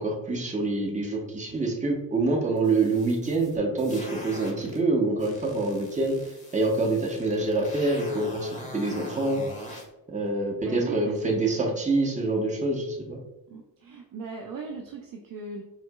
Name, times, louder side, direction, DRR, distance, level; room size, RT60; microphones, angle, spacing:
voice 1, 0.0-6.2 6.5-9.4 9.7-9.8 10.1-13.2, right 2 dB, 15° right, 0 dB, 0.8 m, -26 dB
sound 1, 2.6-4.8 5.2-9.8, left 1 dB, 15° left, 1.0 m, -42 dB
voice 2, 10.6-11.2 11.5-11.8 13.5-15.6, right 4 dB, 45° right, 1 dB, 0.5 m, -38 dB
4.3 x 2.0 x 2.2 m, 0.96 s
hypercardioid pair, 45°, 48 cm